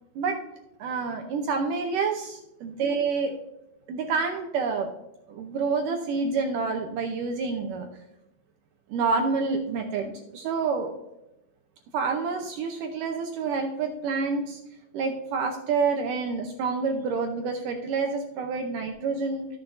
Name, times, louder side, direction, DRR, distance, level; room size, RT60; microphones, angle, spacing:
voice 1, 0.8-3.3 3.9-4.9 5.3-7.9 8.9-10.9 11.9-14.6 14.9-19.5, right 4 dB, 80° right, 4 dB, 1.9 m, -28 dB
13.5 x 7.4 x 2.6 m, 0.91 s
omnidirectional pair, 4.7 m